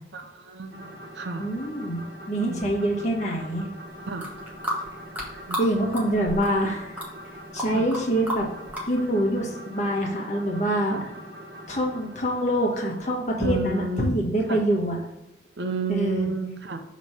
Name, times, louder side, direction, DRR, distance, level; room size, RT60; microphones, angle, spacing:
voice 1, 0.1-1.5 2.5-2.7 4.1-4.3 5.5-5.6 7.7-7.8 10.9-11.0 13.4-14.1 14.5-14.6 15.6-16.8, right 3 dB, 80° right, 6 dB, 0.7 m, -31 dB
sound 1, 0.7-13.5, equal, 65° right, 1.0 m, -43 dB
voice 2, 1.4-3.7 5.6-7.0 7.5-8.5 8.9-11.0 11.7-15.0 15.9-16.3, right 1 dB, 40° left, -1 dB, 1.4 m, -25 dB
sound 2, 4.1-5.7 5.9-6.7 7.0-8.0 8.3-8.9, equal, 10° right, 1.2 m, -31 dB
6.2 x 3.1 x 5.7 m, 0.91 s
head